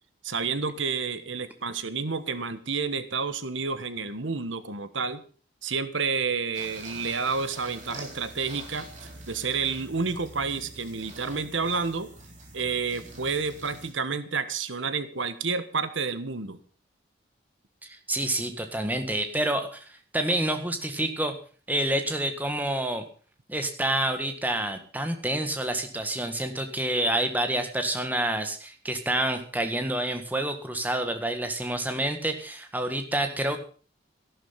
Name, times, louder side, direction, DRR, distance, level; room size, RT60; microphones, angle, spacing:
voice 1, 0.2-5.2 5.6-12.1 12.5-16.6, right 5 dB, 85° right, 11 dB, 1.4 m, -30 dB
sound 1, 6.5-13.9, right 2 dB, 40° right, 4.1 m, -45 dB
voice 2, 17.8-19.8 20.1-21.3 21.7-23.0 23.5-33.6, right 1 dB, 10° right, 6 dB, 1.6 m, -28 dB
14.0 x 11.5 x 5.7 m, 0.41 s
head